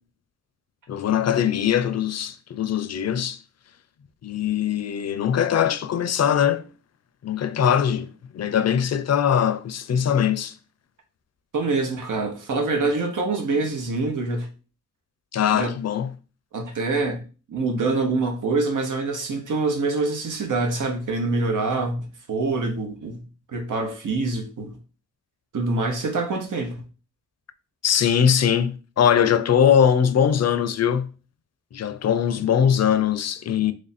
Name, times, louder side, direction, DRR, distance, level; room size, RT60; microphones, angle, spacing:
voice 1, 0.9-3.4 4.2-6.6 7.2-10.5 15.3-16.1 27.8-31.1 31.7-33.7, left 8 dB, 60° left, 0.5 m, -21 dB
voice 2, 11.5-14.5 15.5-15.7 16.5-17.2 17.5-23.2 23.5-24.8 25.5-26.8, right 3 dB, 85° right, 0.9 m, -25 dB
3.2 x 2.6 x 4.1 m
wide cardioid pair, 85°, 30 cm